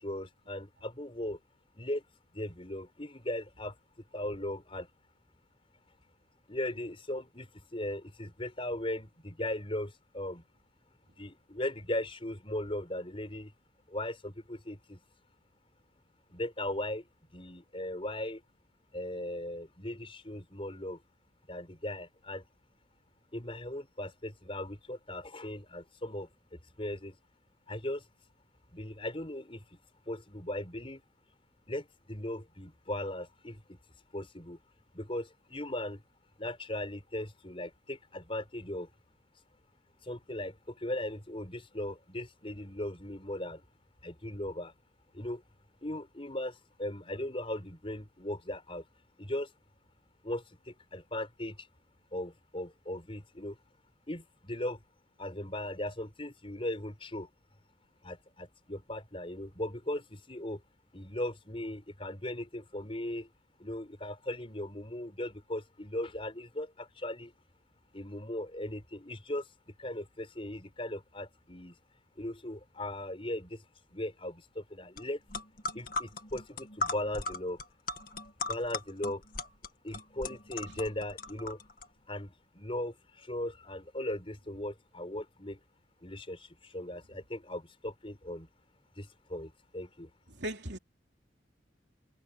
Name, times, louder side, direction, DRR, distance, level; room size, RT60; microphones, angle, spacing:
voice 1, 0.0-1.4 1.7-2.0 2.3-3.7 4.1-4.9 6.5-10.4 11.2-13.5 13.9-15.0 16.3-17.0 17.3-18.4 18.9-21.0 21.5-22.4 23.3-26.3 26.8-27.1 27.7-28.0 28.7-29.6 30.1-31.0 31.7-33.8 34.1-34.6 34.9-36.0 36.4-38.9 40.1-43.6 44.0-44.7 45.1-45.4 45.8-48.8 49.2-49.5 50.2-51.6 52.1-53.5 54.1-54.8 55.2-57.3 58.0-60.6 60.9-63.3 63.6-67.3 67.9-69.4 69.8-71.7 72.2-73.6 73.9-75.2 75.7-77.6 78.5-79.2 79.8-81.6 82.1-85.6 86.0-88.5 89.0-90.1, left 1 dB, 30° left, 5.1 m, -38 dB
sound 1, 75.0-75.1 75.3-81.9, left 3 dB, 50° left, 2.1 m, -38 dB
voice 2, 90.3-90.8, right 1 dB, 70° right, 3.2 m, -37 dB
head